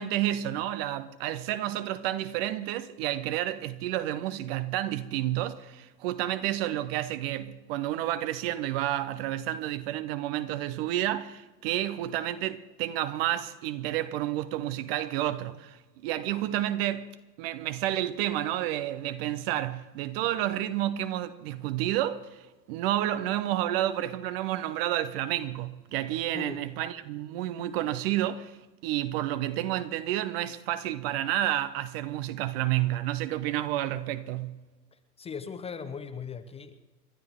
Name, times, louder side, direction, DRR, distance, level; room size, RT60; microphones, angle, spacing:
voice 1, 0.0-17.1 17.4-22.4 22.7-28.6 28.8-34.6, right 13 dB, 35° right, 0.8 m, -30 dB
voice 2, 26.3-26.7 34.9-36.9, left 6 dB, 10° left, 0.7 m, -39 dB
29.5 x 12.0 x 3.6 m
figure-of-eight pair, 95°, 49 cm